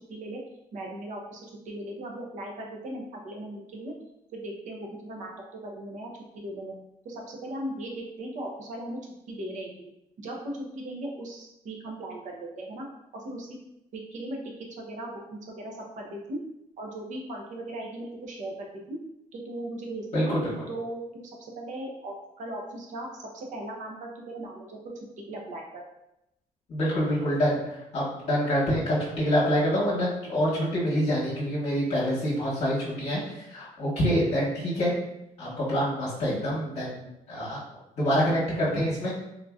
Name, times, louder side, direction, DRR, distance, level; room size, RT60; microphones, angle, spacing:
voice 1, 0.1-0.4 0.7-3.9 4.3-5.3 5.6-6.7 7.0-9.0 9.3-9.9 10.2-12.8 13.1-13.5 13.9-14.4 14.8-16.4 16.8-19.0 19.3-20.3 20.7-24.9 25.3-25.6, right 1 dB, 60° right, 0 dB, 0.7 m, -38 dB
voice 2, 20.1-20.5 26.7-34.9 35.4-37.6 38.0-39.1, equal, 50° left, -8 dB, 1.0 m, -26 dB
3.6 x 2.6 x 2.3 m, 0.85 s
cardioid pair, 145°, 14 cm